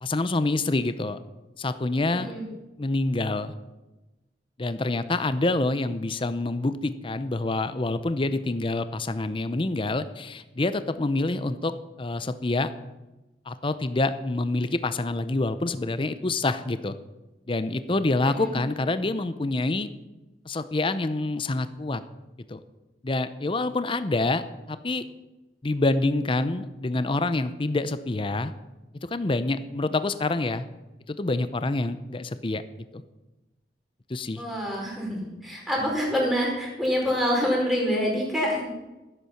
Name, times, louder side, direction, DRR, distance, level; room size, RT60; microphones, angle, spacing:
voice 1, 0.0-1.2 1.6-2.3 2.8-3.5 4.6-11.7 12.0-12.7 13.5-16.9 17.5-19.9 20.5-22.0 22.5-22.6 23.0-25.0 25.6-28.5 29.1-30.7 31.1-32.6 32.9-33.0 34.1-34.4, left 2 dB, 30° left, 12 dB, 0.6 m, -27 dB
voice 2, 2.1-2.5 18.2-18.6 34.3-38.7, equal, ahead, -4 dB, 4.4 m, -26 dB
15.0 x 8.3 x 5.8 m, 1.1 s
head